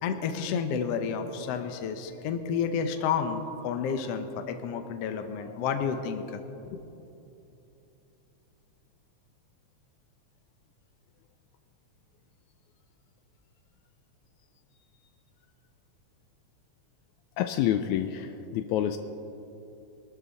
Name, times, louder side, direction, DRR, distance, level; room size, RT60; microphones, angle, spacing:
voice 1, 0.0-6.4 6.7-6.8, left 6 dB, 65° left, 7 dB, 1.8 m, -30 dB
voice 2, 17.4-19.0, left 11 dB, 80° left, 8 dB, 1.9 m, -28 dB
22.5 x 12.5 x 4.1 m, 2.8 s
omnidirectional pair, 3.4 m